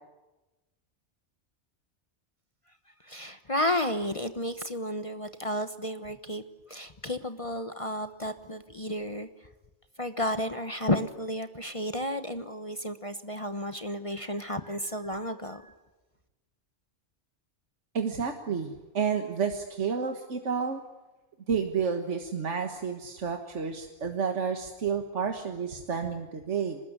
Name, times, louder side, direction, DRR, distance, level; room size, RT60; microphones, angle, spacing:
voice 1, 3.0-6.4 6.7-9.3 10.0-15.7, left 1 dB, 30° left, 9 dB, 1.2 m, -32 dB
voice 2, 17.9-20.8 21.5-26.8, right 6 dB, 85° right, 5 dB, 1.8 m, -30 dB
26.0 x 20.0 x 9.8 m, 1.1 s
omnidirectional pair, 1.2 m